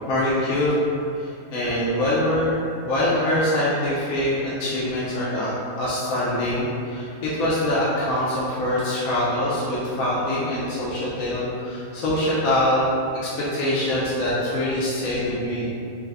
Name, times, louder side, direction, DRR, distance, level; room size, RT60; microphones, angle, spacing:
voice 1, 0.1-0.8 1.1-5.5 5.8-15.7, left 1 dB, 75° left, -8 dB, 1.0 m, -24 dB
3.5 x 2.0 x 3.3 m, 2.6 s
omnidirectional pair, 1.5 m